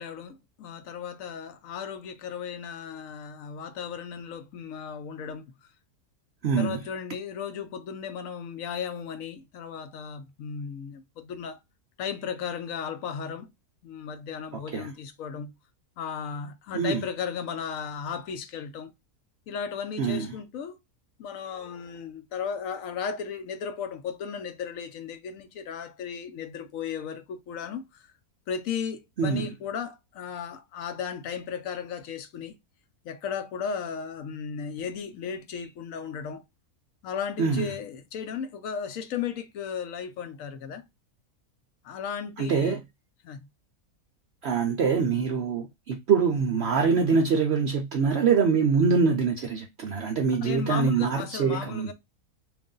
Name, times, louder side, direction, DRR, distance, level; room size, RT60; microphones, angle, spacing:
voice 1, 0.0-5.5 6.6-11.6 12.0-13.5 13.8-15.5 16.0-18.9 19.5-20.8 21.2-28.1 28.5-32.5 33.0-36.4 37.0-40.8 41.8-42.8 43.2-43.5 50.4-51.9, left 7 dB, 70° left, 1.0 m, -35 dB
voice 2, 6.4-6.8 14.7-14.9 16.7-17.0 20.0-20.3 29.2-29.5 37.4-37.7 42.4-42.8 44.4-51.9, right 5 dB, 65° right, 0.6 m, -24 dB
3.2 x 2.5 x 3.7 m
omnidirectional pair, 1.6 m